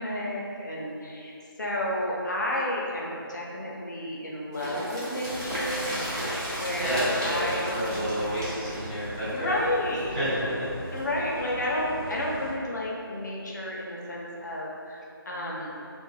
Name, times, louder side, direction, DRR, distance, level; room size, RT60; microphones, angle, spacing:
voice 1, 0.0-1.3 1.6-5.9 6.5-7.7 9.2-10.2 10.9-15.0 15.3-15.7, left 1 dB, 50° left, -4 dB, 0.4 m, -31 dB
sound 1, 4.5-10.3 10.6-10.7 10.9-11.0, equal, 50° right, 1.0 m, -35 dB
sound 2, 5.2-12.5, equal, 75° right, 0.9 m, -39 dB
voice 2, 6.7-9.5 10.1-10.7, equal, 20° right, -12 dB, 0.5 m, -30 dB
2.2 x 2.1 x 3.1 m, 2.6 s
figure-of-eight pair, 165°, 12 cm